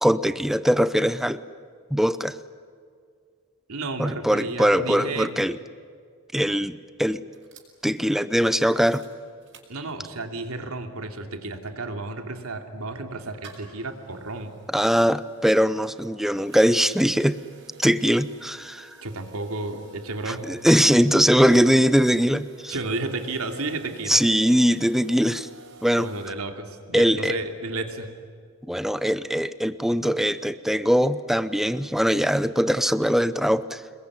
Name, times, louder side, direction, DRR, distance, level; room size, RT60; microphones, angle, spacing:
voice 1, 0.0-1.4 1.9-2.4 4.0-5.6 6.3-7.2 7.8-9.0 14.7-17.4 17.8-18.9 20.3-22.7 24.1-25.5 25.8-26.1 26.9-27.3 28.7-33.8, equal, ahead, 14 dB, 0.7 m, -21 dB
voice 2, 3.7-5.4 9.7-14.5 19.0-20.5 22.7-24.2 26.0-28.1, right 2 dB, 80° right, 5 dB, 2.9 m, -32 dB
sound 1, 7.3-10.3 10.7-10.8 11.0-26.3, right 2 dB, 55° right, 6.4 m, -50 dB
27.5 x 21.5 x 9.7 m, 2.2 s
head